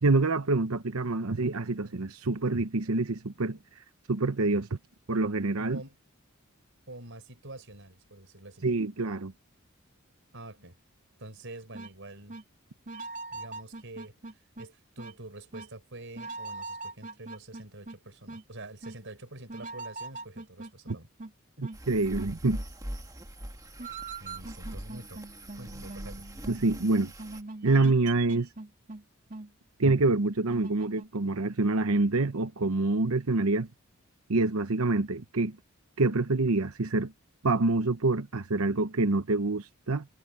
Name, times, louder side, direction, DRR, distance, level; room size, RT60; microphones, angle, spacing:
voice 1, 0.0-3.6 4.1-4.7 5.1-5.8 8.6-9.3 21.9-22.6 26.5-27.1 27.6-28.5 29.8-33.7 34.3-35.6 36.0-37.1 37.4-40.1, right 3 dB, 85° right, 1.0 m, -26 dB
voice 2, 6.9-8.7 10.3-10.7 11.2-12.4 13.3-14.2 14.6-21.1 21.6-21.7 24.2-25.2 25.6-26.3, right 2 dB, 60° right, 6.0 m, -46 dB
sound 1, 11.7-11.9 12.3-12.4 12.9-14.7 15.0-15.1 15.5-15.7 16.2-18.0 18.3-18.4 18.8-19.0 19.5-21.3 21.6-21.8 22.2-22.3 23.8-26.7 27.2-29.0 29.3-29.5 29.9-30.0 30.5-31.1, right 3 dB, 40° right, 3.0 m, -41 dB
sound 2, 21.7-27.4, right 1 dB, 15° right, 1.7 m, -42 dB
head